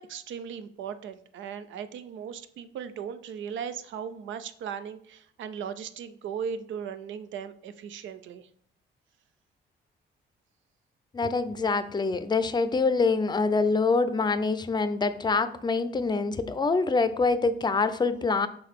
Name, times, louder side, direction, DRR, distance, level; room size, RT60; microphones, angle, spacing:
voice 1, 0.0-8.5, right 7 dB, 75° right, 12 dB, 0.6 m, -37 dB
voice 2, 11.1-18.5, left 4 dB, 20° left, 12 dB, 0.5 m, -25 dB
5.9 x 3.9 x 4.7 m, 0.64 s
cardioid pair, 90°, 20 cm